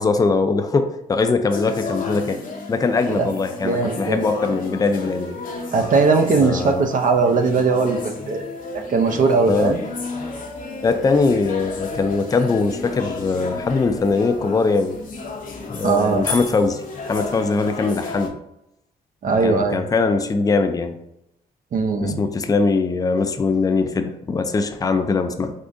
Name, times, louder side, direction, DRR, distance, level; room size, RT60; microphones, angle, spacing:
voice 1, 0.0-2.4 2.7-5.4 6.4-6.9 9.5-9.7 10.8-14.9 15.7-18.3 19.4-21.0 22.0-25.5, left 4 dB, 20° left, 7 dB, 0.4 m, -21 dB
sound 1, 1.5-18.3, left 3 dB, 55° left, 0.7 m, -32 dB
voice 2, 3.6-4.3 5.7-8.4 8.7-9.8 15.8-16.2 19.2-19.8 21.7-22.2, right 4 dB, 50° right, 5 dB, 0.5 m, -19 dB
3.6 x 2.5 x 2.5 m, 0.83 s
supercardioid pair, 60°, 17 cm